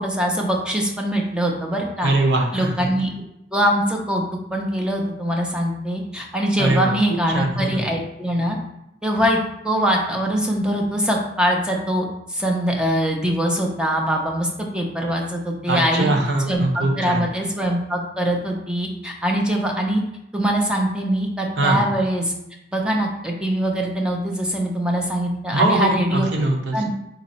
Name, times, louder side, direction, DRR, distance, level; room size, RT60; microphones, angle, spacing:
voice 1, 0.0-2.1 2.5-3.1 3.5-4.2 4.5-8.6 9.0-9.4 9.6-12.0 12.3-14.5 14.7-16.1 16.5-20.0 20.3-22.3 22.7-26.3 26.7-26.9, equal, 5° right, 0 dB, 0.7 m, -22 dB
voice 2, 2.0-2.9 6.6-7.0 7.3-7.8 15.7-17.2 21.6-21.8 25.5-26.9, right 2 dB, 80° right, 1 dB, 0.8 m, -21 dB
4.0 x 3.2 x 4.2 m, 0.84 s
head